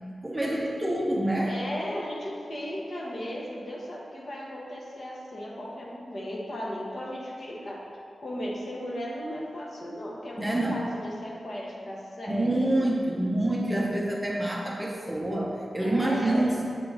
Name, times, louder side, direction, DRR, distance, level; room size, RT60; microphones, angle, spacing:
voice 1, 0.2-1.5 10.4-10.8 12.3-16.6, right 1 dB, 10° right, -2 dB, 0.6 m, -27 dB
voice 2, 1.4-7.8 8.2-12.7 15.8-16.6, equal, 45° left, -3 dB, 1.1 m, -36 dB
7.6 x 4.7 x 3.8 m, 2.3 s
wide cardioid pair, 145°, 0 cm